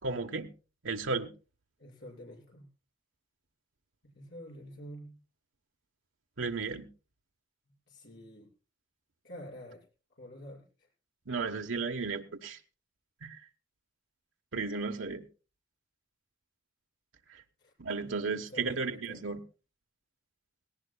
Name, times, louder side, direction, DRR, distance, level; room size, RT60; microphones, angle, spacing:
voice 1, 0.0-0.5 0.8-1.3 6.4-6.9 11.3-12.6 13.2-13.4 14.5-15.2 17.8-19.4, right 4 dB, 85° right, 4 dB, 1.1 m, -34 dB
voice 2, 1.8-2.7 4.0-5.2 7.9-8.5 9.2-9.8 10.2-10.9 17.6-17.7 18.0-19.2, equal, 65° left, -1 dB, 6.2 m, -48 dB
18.0 x 18.0 x 2.3 m, 0.34 s
head